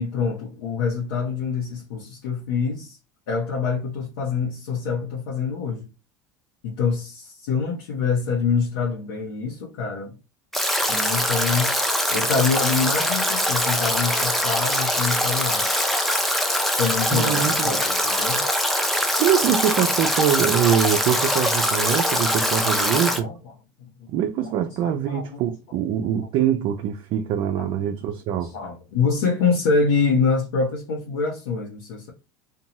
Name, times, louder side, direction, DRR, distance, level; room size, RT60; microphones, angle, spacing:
voice 1, 0.0-3.0 3.3-5.9 6.6-10.2 10.9-11.8 12.1-15.8 16.8-18.4 22.2-22.3 22.8-22.9 23.2-23.3 23.8-23.9 24.4-24.5 24.8-25.3 27.6-27.7 28.4-32.1, left 5 dB, 75° left, 0.8 m, -25 dB
Stream / Drip / Trickle dribble, 10.5-23.2, equal, ahead, 0.5 m, -23 dB
voice 2, 17.1-17.8 19.2-23.3 24.1-28.5, right 9 dB, 50° right, 0.4 m, -23 dB
2.6 x 2.3 x 2.9 m
hypercardioid pair, 85°, 11 cm